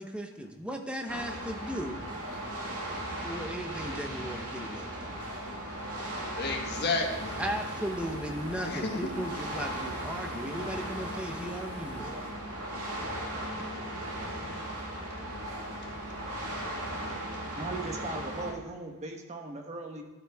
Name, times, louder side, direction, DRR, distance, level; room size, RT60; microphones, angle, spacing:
voice 1, 0.0-2.3 3.2-5.4 7.4-12.2, equal, 5° right, 3 dB, 0.9 m, -37 dB
sound 1, 1.1-18.5, right 1 dB, 85° right, 2.2 m, -37 dB
voice 2, 6.4-7.4 8.6-9.2 15.0-15.2 15.8-15.9 16.5-16.6 17.0-17.2, left 3 dB, 45° left, 2 dB, 1.4 m, -33 dB
sound 2, 6.7-12.4, left 1 dB, 25° left, 1.9 m, -50 dB
voice 3, 17.6-20.0, right 2 dB, 30° right, 2 dB, 1.2 m, -38 dB
12.5 x 7.6 x 3.5 m, 1.3 s
head